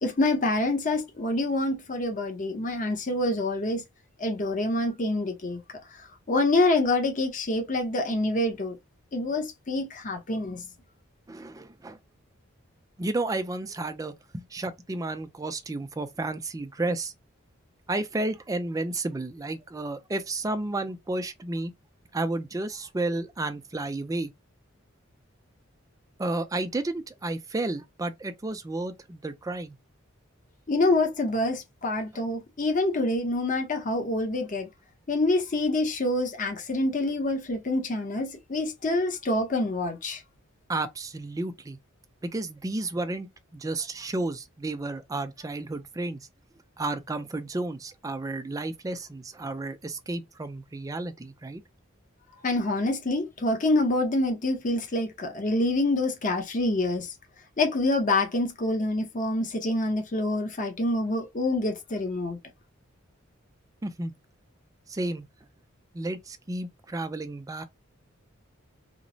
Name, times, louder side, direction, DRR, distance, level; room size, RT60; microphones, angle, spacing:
voice 1, 0.0-3.8 4.2-5.6 6.3-8.8 9.1-10.6 30.7-34.7 35.1-40.2 52.4-57.1 57.6-62.4, left 2 dB, 40° left, 0.7 m, -26 dB
voice 2, 11.3-12.0 13.0-17.1 17.9-21.7 22.1-24.3 26.2-29.8 40.7-41.8 42.2-43.3 43.5-46.3 46.8-51.6 63.8-64.1 64.9-65.3 65.9-67.6, right 2 dB, 15° right, 0.3 m, -32 dB
2.9 x 2.0 x 2.6 m
head